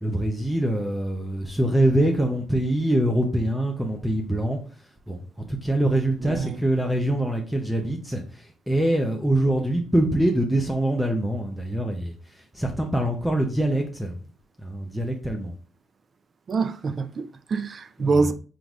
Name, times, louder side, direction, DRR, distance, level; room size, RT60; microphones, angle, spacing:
voice 1, 0.0-4.6 5.1-5.2 5.5-14.1 14.6-15.5 18.0-18.3, right 1 dB, 5° right, 0.6 m, -24 dB
voice 2, 6.2-6.6 16.5-18.3, right 4 dB, 45° right, 0.4 m, -25 dB
4.6 x 3.9 x 2.4 m
cardioid pair, 90°, 0 cm